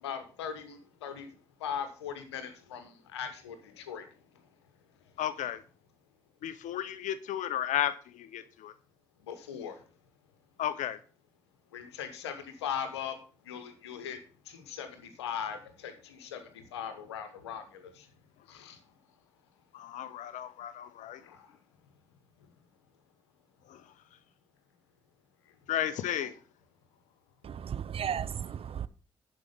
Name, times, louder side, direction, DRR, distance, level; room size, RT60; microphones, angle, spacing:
voice 1, 0.0-1.3 1.6-4.1 9.3-9.7 11.7-13.1 13.5-14.2 14.5-18.1 18.5-18.8 21.2-21.4 26.2-26.3, left 8 dB, 90° left, 1.0 m, -39 dB
voice 2, 5.2-5.6 6.4-8.7 10.6-11.0 19.7-21.2 23.7-23.8 25.7-26.3, left 11 dB, 65° left, 0.7 m, -33 dB
voice 3, 27.4-28.9, right 8 dB, 45° right, 0.5 m, -35 dB
11.0 x 4.7 x 5.6 m
hypercardioid pair, 40°, 14 cm